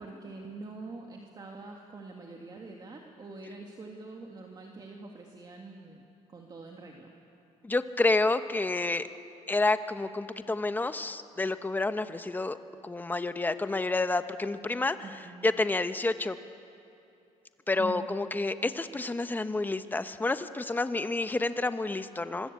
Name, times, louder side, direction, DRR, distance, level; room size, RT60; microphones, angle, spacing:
voice 1, 0.0-6.0 6.3-7.1 15.0-15.5 17.8-18.2, right 3 dB, 30° right, 1 dB, 2.2 m, -44 dB
voice 2, 7.6-9.1 9.5-12.6 12.8-15.0 15.4-16.3 17.7-22.5, left 2 dB, 15° left, 10 dB, 1.0 m, -29 dB
25.5 x 24.5 x 8.4 m, 2.6 s
cardioid pair, 130°, 13 cm